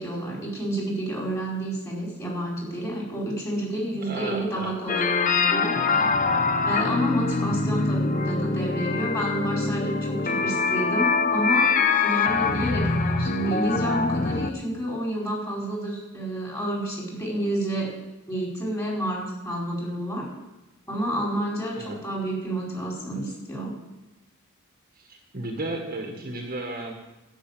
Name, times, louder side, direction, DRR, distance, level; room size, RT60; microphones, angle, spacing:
voice 1, 0.0-6.1 6.7-17.9 18.3-20.3 20.9-23.8, right 1 dB, 15° left, -3 dB, 4.5 m, -29 dB
voice 2, 4.0-4.7 6.2-6.6 21.7-22.0 25.0-26.9, right 2 dB, 45° right, 2 dB, 1.6 m, -34 dB
sound 1, 4.9-14.5, left 4 dB, 40° left, 0.7 m, -24 dB
12.0 x 6.5 x 8.9 m, 1.0 s
head